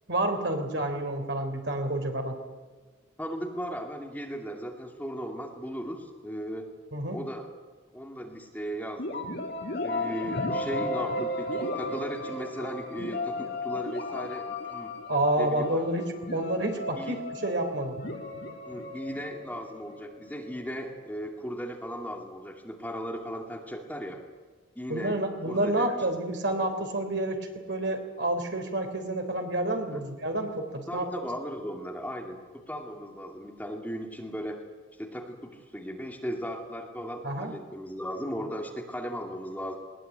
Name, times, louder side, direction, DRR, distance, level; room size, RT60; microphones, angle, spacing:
voice 1, 0.1-2.4 6.9-7.2 15.1-18.0 24.9-31.1 37.2-37.5, right 1 dB, 60° right, 5 dB, 3.5 m, -29 dB
voice 2, 3.2-6.7 7.1-7.5 7.9-9.3 9.8-15.0 15.4-15.9 17.0-17.2 18.7-24.2 24.7-25.2 25.4-25.9 29.9-30.0 30.9-34.6 35.0-39.8, equal, 10° left, 1 dB, 2.5 m, -37 dB
sound 1, 9.0-20.7, left 2 dB, 55° left, 3.1 m, -35 dB
20.5 x 20.0 x 9.0 m, 1.4 s
head